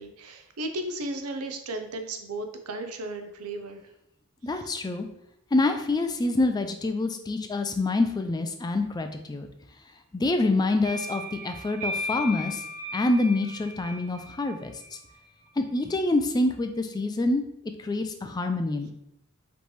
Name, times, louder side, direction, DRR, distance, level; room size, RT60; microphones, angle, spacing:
voice 1, 0.0-3.8 4.6-4.7, right 1 dB, 75° right, 6 dB, 0.6 m, -35 dB
voice 2, 4.4-5.1 5.5-9.5 10.1-12.6 12.9-14.7 15.6-17.4 17.8-18.9, left 2 dB, 20° left, 6 dB, 0.3 m, -26 dB
sound 1, 10.8-15.3, left 1 dB, 35° right, 1.4 m, -36 dB
5.1 x 3.1 x 3.2 m, 0.78 s
head